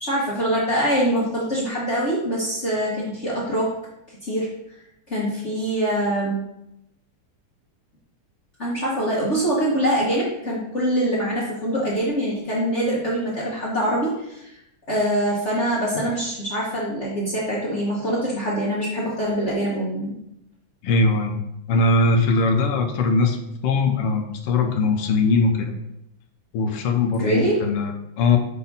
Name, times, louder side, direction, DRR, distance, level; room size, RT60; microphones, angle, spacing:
voice 1, 0.0-3.7 4.2-4.5 5.1-6.4 8.6-14.5 14.9-20.1 27.2-27.6, right 1 dB, 35° left, -6 dB, 1.4 m, -24 dB
voice 2, 20.8-21.4 21.7-23.4 23.6-25.7 26.5-28.4, left 3 dB, 90° left, 5 dB, 1.8 m, -20 dB
5.8 x 4.2 x 5.4 m, 0.83 s
omnidirectional pair, 2.4 m